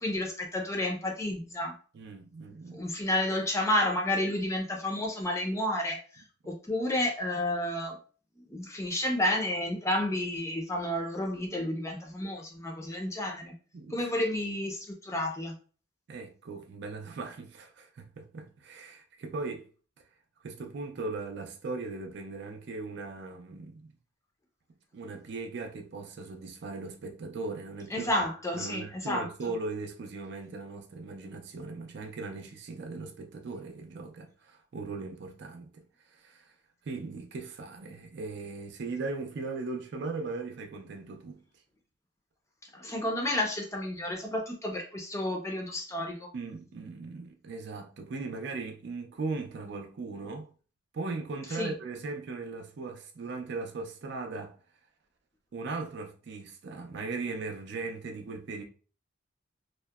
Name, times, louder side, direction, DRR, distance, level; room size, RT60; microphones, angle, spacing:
voice 1, 0.0-1.7 2.7-8.0 8.5-13.5 13.9-15.5 27.9-29.3 42.7-46.3 51.5-51.7, left 1 dB, 15° left, 0.4 m, -31 dB
voice 2, 1.9-2.8 13.7-14.1 16.1-19.7 20.4-23.9 24.9-28.3 28.5-35.8 36.1-36.5 36.8-41.4 46.3-50.5 50.9-54.5 55.5-58.6, right 3 dB, 60° right, 0.4 m, -38 dB
2.7 x 2.0 x 2.2 m
head